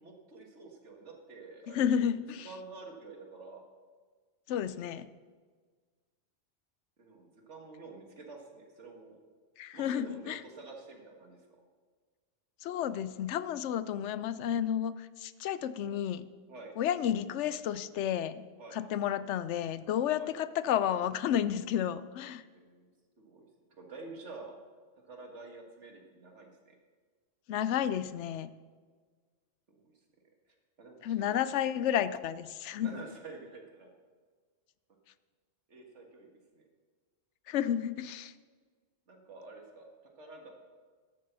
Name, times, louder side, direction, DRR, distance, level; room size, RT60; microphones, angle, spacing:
voice 1, 0.0-2.1 2.5-3.6 7.0-9.2 9.7-11.6 16.5-16.7 18.6-18.8 20.2-20.3 22.4-22.9 23.2-23.5 23.8-24.6 25.0-26.8 29.7-29.9 30.8-31.2 32.8-33.9 35.7-36.3 36.5-36.6 39.1-39.9 40.2-40.5, right 3 dB, 80° right, 2 dB, 1.9 m, -49 dB
voice 2, 1.7-2.5 4.5-5.1 9.6-10.4 12.6-16.3 16.8-18.5 18.7-22.4 27.5-28.5 31.0-33.0 37.5-38.3, left 9 dB, 80° left, 15 dB, 0.9 m, -31 dB
12.0 x 6.8 x 6.8 m, 1.5 s
omnidirectional pair, 1.2 m